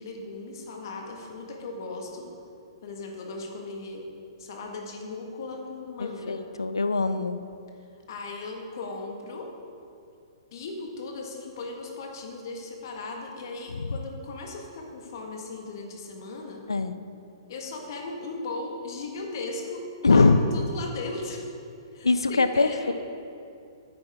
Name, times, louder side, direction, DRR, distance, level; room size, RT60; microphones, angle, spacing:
voice 1, 0.0-2.3 2.8-4.1 4.4-6.4 8.1-9.5 10.5-16.6 17.5-19.8 20.1-21.4 21.9-22.9, left 3 dB, 55° left, 1 dB, 1.7 m, -37 dB
voice 2, 6.0-7.4 13.8-13.9 16.7-16.9 20.0-20.4 22.0-22.9, left 3 dB, 90° left, 11 dB, 0.5 m, -22 dB
9.8 x 9.1 x 3.6 m, 2.5 s
hypercardioid pair, 125°, 2 cm